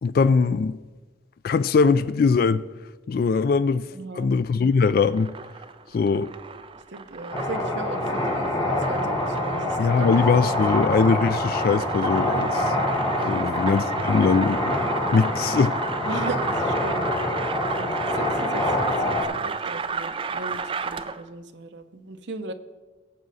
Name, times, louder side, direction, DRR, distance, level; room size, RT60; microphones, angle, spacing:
voice 1, 0.0-0.8 1.4-2.6 3.1-3.9 4.1-5.3 5.9-6.3 9.8-12.8 13.2-14.8 15.1-15.8, left 5 dB, 50° left, 0.3 m, -21 dB
voice 2, 3.9-4.3 6.9-10.4 13.1-13.6 16.0-17.1 17.7-22.5, right 3 dB, 70° right, 0.8 m, -38 dB
sound 1, 4.6-21.3, right 5 dB, 30° right, 0.4 m, -33 dB
sound 2, 7.3-19.2, left 1 dB, 20° left, 1.6 m, -26 dB
17.0 x 7.5 x 4.0 m
head